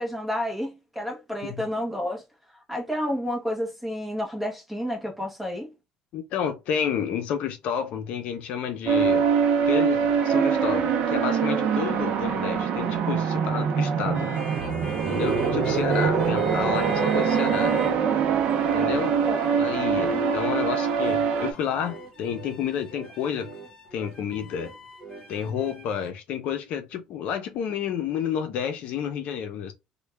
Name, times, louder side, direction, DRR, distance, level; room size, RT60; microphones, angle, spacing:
voice 1, 0.0-2.2 2.7-5.7 18.8-19.5 20.1-20.6, equal, 5° right, 0.9 m, -31 dB
voice 2, 6.1-9.3 9.6-14.3 15.1-17.8 18.7-19.1 19.6-23.5 23.9-24.7 25.3-29.7, left 8 dB, 60° left, 0.6 m, -30 dB
sound 1, 8.9-21.5, right 6 dB, 50° right, 0.6 m, -23 dB
sound 2, 14.1-18.2 18.4-26.1, equal, 30° left, 1.6 m, -40 dB
3.3 x 2.2 x 3.3 m
cardioid pair, 150°, 2 cm